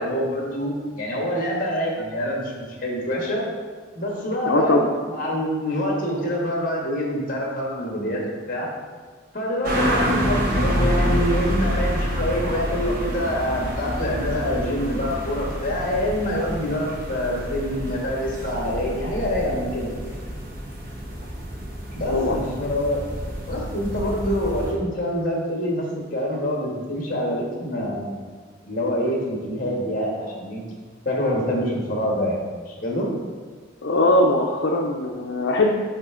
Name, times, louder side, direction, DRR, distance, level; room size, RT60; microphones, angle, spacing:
voice 1, 0.0-3.4 3.9-8.2 8.5-8.7 9.3-20.0 21.9-23.0 23.5-25.9 26.1-28.2 28.6-30.6 31.0-32.4 32.7-33.1, equal, 45° left, -2 dB, 1.4 m, -26 dB
voice 2, 4.5-4.9 22.1-22.5 33.8-35.7, left 2 dB, 70° left, -1 dB, 0.5 m, -20 dB
sound 1, 9.6-24.7, equal, 45° right, 1.1 m, -27 dB
9.1 x 3.4 x 3.7 m, 1.5 s
head